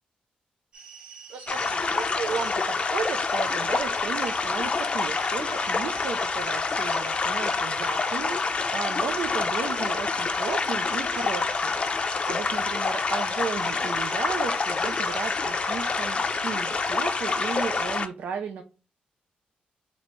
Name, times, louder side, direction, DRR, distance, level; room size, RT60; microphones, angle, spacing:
sound 1, 0.7-18.0, right 5 dB, 30° right, 1.0 m, -46 dB
voice 1, 1.3-18.6, right 6 dB, 80° right, 6 dB, 0.4 m, -34 dB
sound 2, 1.5-18.1, left 4 dB, 35° left, 0.5 m, -27 dB
3.1 x 2.9 x 4.2 m, 0.33 s
cardioid pair, 95°, 3 cm